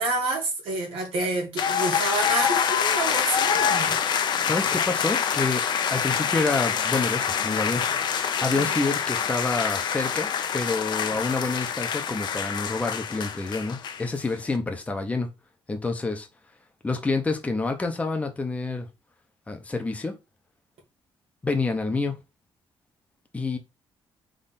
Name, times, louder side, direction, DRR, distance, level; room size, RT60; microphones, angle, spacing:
voice 1, 0.0-4.0 8.5-8.8, right 2 dB, 85° right, 1.7 m, -28 dB
sound 1, 1.6-14.3, left 7 dB, 55° left, 0.6 m, -26 dB
voice 2, 4.4-5.6 5.9-7.8 8.4-15.3 15.7-16.3 16.8-18.9 19.5-20.1 21.4-22.2 23.3-23.6, left 3 dB, 15° left, 0.7 m, -28 dB
3.7 x 3.2 x 4.1 m
cardioid pair, 135°, 9 cm